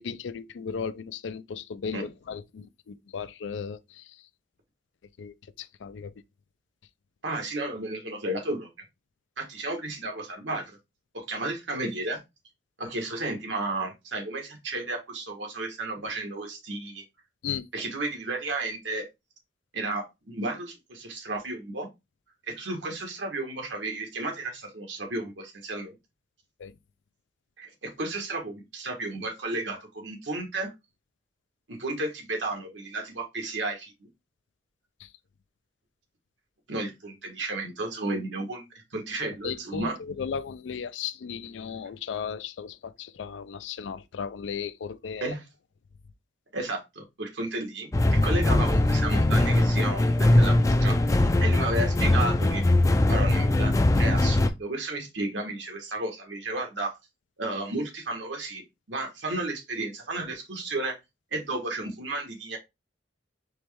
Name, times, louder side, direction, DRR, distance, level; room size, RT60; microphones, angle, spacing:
voice 1, 0.0-4.2 5.2-6.1 17.4-17.6 26.6-26.7 35.0-35.1 39.4-45.3, left 6 dB, 85° left, 0.4 m, -36 dB
voice 2, 7.2-8.7 9.4-10.8 11.1-12.2 12.8-17.0 17.7-19.1 19.7-21.9 22.5-26.0 27.6-30.7 31.7-34.1 36.7-38.7 38.9-40.0 45.2-45.4 46.5-52.6 53.1-57.0 57.4-61.0 61.3-62.6, right 2 dB, 80° right, 1.5 m, -33 dB
sound 1, 47.9-54.5, left 1 dB, 20° left, 0.3 m, -21 dB
4.5 x 3.1 x 3.3 m
head